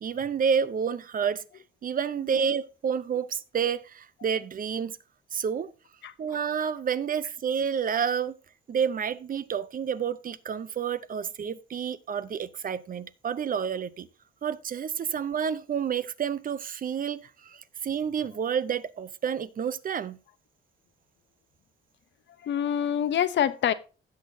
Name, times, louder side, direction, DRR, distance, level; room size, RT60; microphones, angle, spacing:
voice 1, 0.0-1.4 1.8-5.0 5.3-5.7 6.2-8.4 8.7-14.1 14.4-17.6 17.8-20.2, right 7 dB, 45° right, 0.7 m, -29 dB
voice 2, 6.0-6.4 22.4-23.7, left 9 dB, 65° left, 0.8 m, -26 dB
16.5 x 6.3 x 2.7 m
cardioid pair, 90°, 20 cm